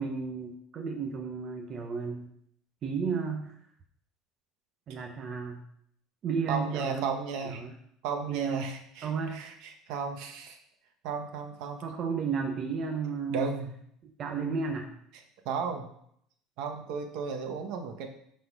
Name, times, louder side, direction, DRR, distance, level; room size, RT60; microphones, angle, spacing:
voice 1, 0.0-2.3 2.8-3.5 4.9-5.6 6.2-7.1 7.5-7.7 8.3-8.7 9.0-9.4 11.8-13.5 14.2-14.9, right 5 dB, 35° right, 2 dB, 0.9 m, -33 dB
voice 2, 6.5-7.6 8.0-10.6 11.0-11.8 13.3-13.7 15.1-15.9 16.6-18.1, right 5 dB, 65° right, 5 dB, 1.4 m, -34 dB
9.8 x 4.2 x 5.5 m, 0.68 s
cardioid pair, 160°, 0 cm